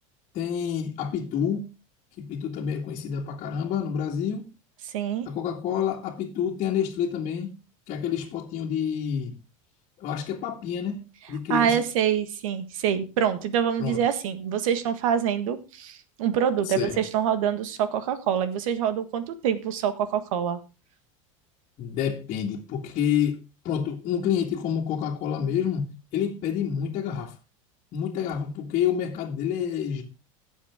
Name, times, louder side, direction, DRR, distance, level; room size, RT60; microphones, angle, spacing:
voice 1, 0.3-1.7 2.2-4.5 5.3-7.5 7.9-9.3 10.0-11.0 11.3-11.8 13.8-14.0 16.7-17.0 21.8-23.4 23.6-27.3 27.9-30.0, left 8 dB, 45° left, 2.0 m, -28 dB
voice 2, 4.8-5.3 11.5-20.6, right 8 dB, 80° right, 1.6 m, -26 dB
16.0 x 7.3 x 3.6 m
supercardioid pair, 125°, 17 cm